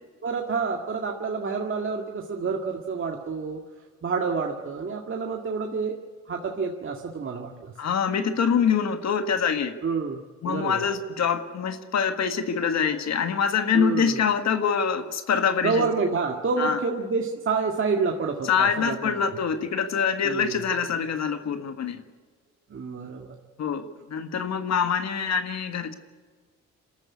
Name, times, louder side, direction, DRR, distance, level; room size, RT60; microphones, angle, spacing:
voice 1, 0.2-3.6 4.0-6.0 6.3-7.7 9.8-10.8 13.7-14.2 15.6-19.2 20.2-20.6 22.7-23.4, right 4 dB, 45° right, 1 dB, 1.9 m, -28 dB
voice 2, 7.8-9.7 10.4-15.9 16.6-16.8 18.4-22.0 23.6-25.9, left 6 dB, 60° left, 8 dB, 1.6 m, -25 dB
24.0 x 13.5 x 9.7 m, 1.6 s
cardioid pair, 90°, 30 cm